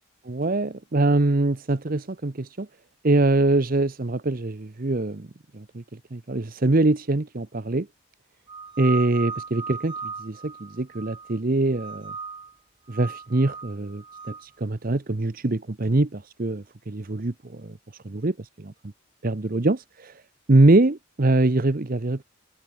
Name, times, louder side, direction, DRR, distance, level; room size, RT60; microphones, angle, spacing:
voice 1, 0.2-2.7 3.0-5.3 5.5-5.8 6.1-7.9 8.8-12.1 12.9-17.8 18.0-18.7 19.2-20.2 20.5-22.2, right 2 dB, 40° right, 0.8 m, -23 dB
sound 1, 8.5-11.4 11.8-12.5 12.9-14.4, right 5 dB, 20° right, 1.6 m, -37 dB
head